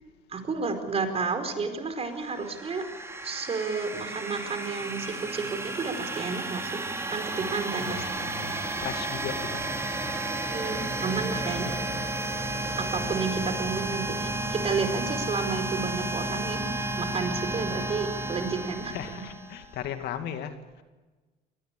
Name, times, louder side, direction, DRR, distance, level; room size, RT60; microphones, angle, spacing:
voice 1, 0.3-2.9 3.2-6.8 7.1-8.0 10.3-11.8 12.8-19.2, right 4 dB, 35° right, 7 dB, 4.8 m, -31 dB
sound 1, 2.1-19.7, right 2 dB, 15° right, 3.5 m, -32 dB
voice 2, 7.8-9.6 10.8-11.4 12.6-13.2 18.8-20.6, left 9 dB, 75° left, 8 dB, 2.5 m, -38 dB
25.5 x 19.5 x 8.4 m, 1.2 s
cardioid pair, 110°, 17 cm